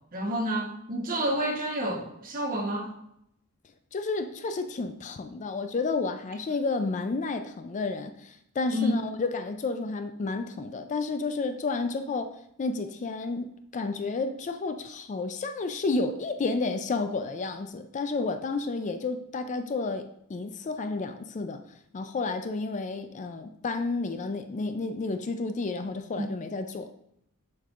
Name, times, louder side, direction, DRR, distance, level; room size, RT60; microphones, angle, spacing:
voice 1, 0.1-2.9 8.7-9.0, equal, 40° right, 1.1 m, -29 dB
voice 2, 3.9-21.6 21.9-26.9, left 3 dB, 35° left, 0.4 m, -31 dB
7.4 x 5.4 x 2.4 m
head